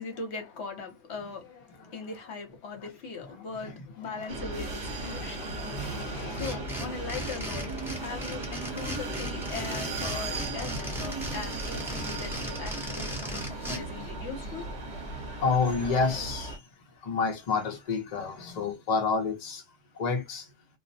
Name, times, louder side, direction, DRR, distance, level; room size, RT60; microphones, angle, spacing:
voice 1, 0.0-5.6 6.0-14.7, left 4 dB, 65° left, 1.0 m, -40 dB
sound 1, 4.3-16.6, right 2 dB, 45° right, 0.7 m, -36 dB
voice 2, 5.0-6.6 8.1-8.2 9.7-9.8 10.2-10.5 15.1-16.6 17.0-19.6 19.9-20.5, left 4 dB, 45° left, 0.6 m, -30 dB
sound 2, 6.1-13.8, equal, ahead, 0.7 m, -37 dB
2.3 x 2.0 x 2.6 m
omnidirectional pair, 1.3 m